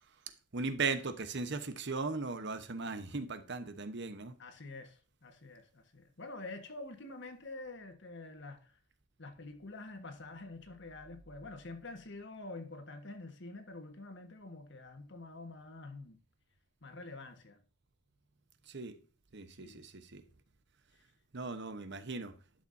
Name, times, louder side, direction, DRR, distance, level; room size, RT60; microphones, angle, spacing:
voice 1, 0.5-4.4 18.7-18.9 19.3-20.2 21.3-22.3, right 4 dB, 55° right, 1.1 m, -38 dB
voice 2, 4.4-8.7 9.2-16.2 16.8-17.6 19.6-19.8, left 2 dB, 55° left, 1.5 m, -47 dB
11.5 x 7.0 x 2.7 m
head